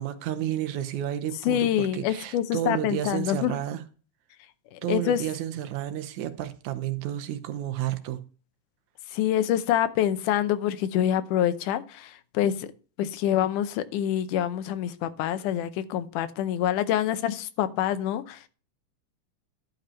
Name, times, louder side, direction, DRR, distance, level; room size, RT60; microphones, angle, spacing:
voice 1, 0.0-3.8 4.8-8.2, right 12 dB, 75° right, 2.1 m, -31 dB
voice 2, 1.5-3.5 4.7-5.2 9.1-12.7 13.0-18.5, left 11 dB, 80° left, 2.2 m, -26 dB
12.0 x 5.2 x 4.3 m
omnidirectional pair, 3.7 m